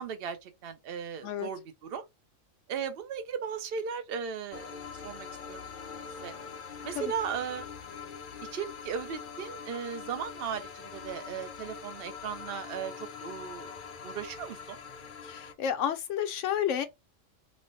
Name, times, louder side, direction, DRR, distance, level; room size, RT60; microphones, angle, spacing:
voice 1, 0.0-2.1 2.7-4.8 5.0-6.3 6.8-7.7 8.5-13.8 14.0-14.8, right 7 dB, 55° right, 0.8 m, -37 dB
sound 1, 4.5-15.5, left 6 dB, 50° left, 0.6 m, -43 dB
voice 2, 15.2-16.9, left 9 dB, 70° left, 1.0 m, -30 dB
3.1 x 2.1 x 4.0 m
omnidirectional pair, 1.3 m